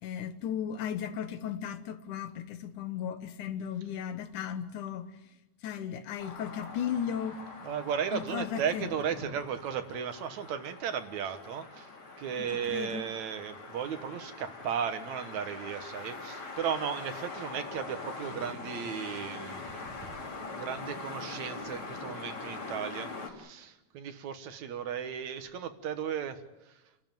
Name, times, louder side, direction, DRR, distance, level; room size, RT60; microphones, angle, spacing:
voice 1, 0.0-5.1 5.6-7.4 8.1-8.9 12.7-13.0, left 9 dB, 85° left, 2.7 m, -35 dB
sound 1, 6.2-23.3, left 3 dB, 45° left, 3.5 m, -43 dB
voice 2, 7.6-11.9 12.2-19.6 20.5-26.4, right 8 dB, 70° right, 2.5 m, -35 dB
30.0 x 12.5 x 9.2 m
omnidirectional pair, 3.4 m